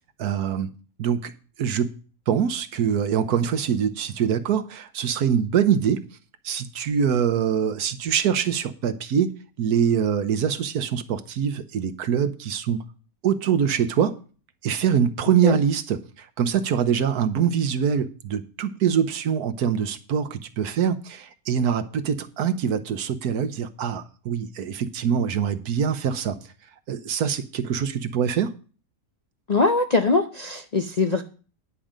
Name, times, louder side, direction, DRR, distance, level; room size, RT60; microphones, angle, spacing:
voice 1, 0.2-0.7 1.0-1.3 1.6-1.9 2.3-6.0 6.4-9.3 9.6-12.8 13.2-14.2 14.6-26.4 26.9-28.5, right 8 dB, 80° right, 1.4 m, -24 dB
voice 2, 29.5-31.2, left 3 dB, 45° left, 0.5 m, -22 dB
10.0 x 5.2 x 7.4 m
omnidirectional pair, 1.6 m